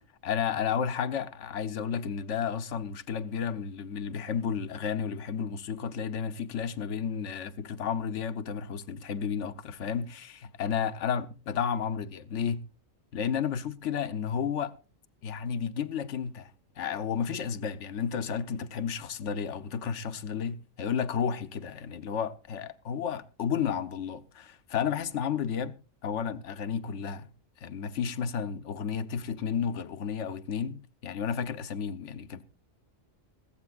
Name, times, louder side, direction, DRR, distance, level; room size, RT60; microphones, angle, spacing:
voice 1, 0.2-12.7 13.1-14.7 15.2-25.8 26.0-27.3 27.6-32.4, left 7 dB, 65° left, 1.1 m, -32 dB
20.5 x 15.5 x 2.4 m
omnidirectional pair, 1.4 m